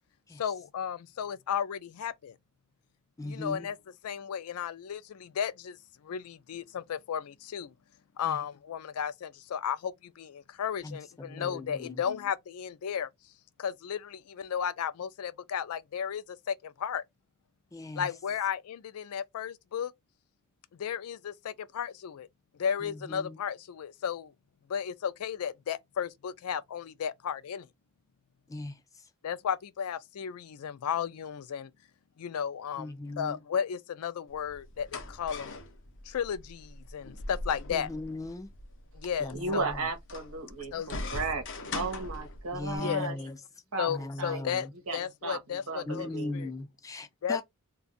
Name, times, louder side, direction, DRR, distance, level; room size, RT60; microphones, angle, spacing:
voice 1, 0.4-2.4 3.3-3.8 4.0-5.8 6.0-7.7 8.2-13.1 13.6-17.0 18.0-19.9 20.8-22.3 22.6-24.3 24.7-27.7 29.2-31.7 32.2-35.6 36.1-37.9 38.9-39.6 40.7-41.1 42.8-43.1 43.8-46.1 46.3-46.5 47.2-47.4, left 8 dB, 85° left, 0.4 m, -34 dB
voice 2, 3.2-3.7 8.2-8.5 10.8-12.0 17.7-18.1 22.8-23.4 28.5-29.1 32.8-33.4 37.7-38.5 39.2-39.9 42.5-43.4 43.9-44.7 45.9-47.4, left 2 dB, 15° left, 0.3 m, -39 dB
sound 1, 34.3-42.8, left 2 dB, 60° left, 0.7 m, -41 dB
voice 3, 39.3-41.4 41.7-43.2 43.7-43.9 44.2-44.6 44.9-46.3, right 3 dB, 70° right, 1.0 m, -35 dB
2.4 x 2.3 x 3.8 m
head